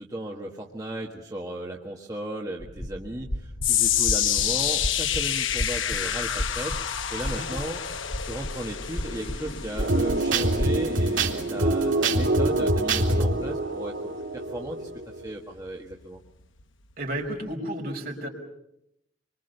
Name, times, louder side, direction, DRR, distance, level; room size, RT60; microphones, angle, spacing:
voice 1, 0.0-6.7 7.1-7.8 8.2-14.0 14.3-14.9 15.2-16.2, right 1 dB, 20° right, -1 dB, 1.6 m, -35 dB
sound 1, 2.6-10.7, equal, 30° left, 1.2 m, -35 dB
sound 2, 3.6-15.9 16.2-16.6 17.2-17.3, left 10 dB, 90° left, 1.1 m, -30 dB
sound 3, 9.8-15.3, right 2 dB, 90° right, 3.0 m, -25 dB
voice 2, 17.0-18.3, right 1 dB, 50° right, 1 dB, 5.3 m, -32 dB
25.5 x 24.0 x 6.8 m, 0.81 s
head